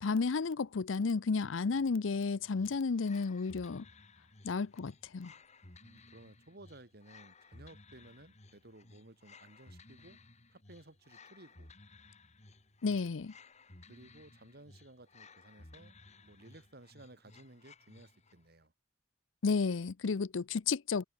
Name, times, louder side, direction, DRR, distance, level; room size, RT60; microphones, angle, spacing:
voice 1, 0.0-3.8 4.4-5.3 12.8-13.3 19.4-21.0, left 4 dB, 85° left, 0.6 m, -32 dB
voice 2, 1.7-2.7 5.8-10.2 10.5-11.7 13.9-18.7, right 1 dB, 55° right, 3.5 m, -57 dB
sound 1, 2.5-18.5, left 3 dB, 35° left, 2.6 m, -58 dB
head